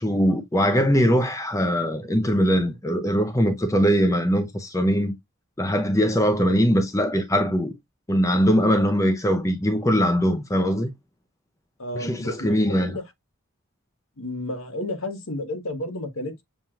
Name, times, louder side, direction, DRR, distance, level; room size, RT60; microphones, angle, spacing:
voice 1, 0.0-5.1 5.6-7.7 8.1-10.9 12.0-13.0, equal, 15° left, 0.6 m, -21 dB
voice 2, 11.8-13.0 14.2-16.4, left 1 dB, 70° left, 1.2 m, -32 dB
7.1 x 3.0 x 2.3 m
head